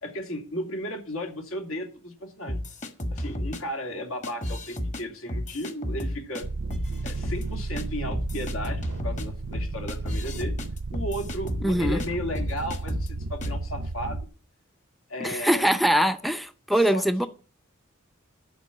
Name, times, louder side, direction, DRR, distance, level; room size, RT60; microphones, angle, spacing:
voice 1, 0.0-2.6 3.1-6.5 7.0-10.6 10.9-14.3 15.1-15.7 16.7-17.3, equal, 80° left, 2.7 m, -34 dB
sound 1, 2.5-3.6 4.2-5.0 5.3-6.4 6.7-7.4 7.8-7.9 8.1-12.1 12.3-13.1 13.4-13.6, left 1 dB, 35° left, 1.5 m, -32 dB
sound 2, 6.4-14.3, right 3 dB, 70° right, 0.6 m, -33 dB
voice 2, 11.6-12.0 15.2-17.3, equal, ahead, 0.5 m, -23 dB
11.5 x 5.3 x 8.4 m
head